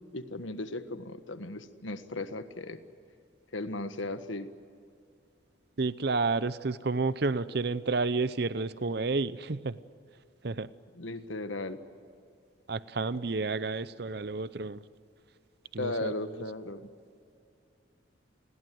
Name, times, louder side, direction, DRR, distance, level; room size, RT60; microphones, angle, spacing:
voice 1, 0.1-2.8 3.5-4.5 10.9-11.8 15.8-16.9, left 2 dB, 85° left, 10 dB, 1.6 m, -36 dB
voice 2, 5.8-9.8 10.4-10.7 12.7-14.8 15.7-16.1, right 3 dB, 55° right, 15 dB, 0.7 m, -30 dB
29.5 x 21.0 x 7.8 m, 2.4 s
head